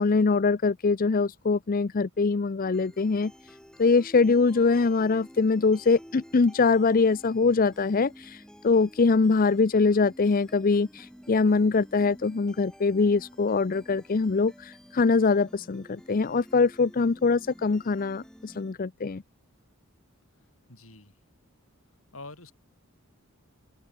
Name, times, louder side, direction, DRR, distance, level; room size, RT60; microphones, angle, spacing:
voice 1, 0.0-3.3 3.8-19.2, left 4 dB, 40° left, 0.5 m, -23 dB
sound 1, 2.7-18.7, equal, 5° left, 4.2 m, -51 dB
voice 2, 20.7-21.1 22.1-22.5, left 2 dB, 70° left, 7.1 m, -45 dB
open air
head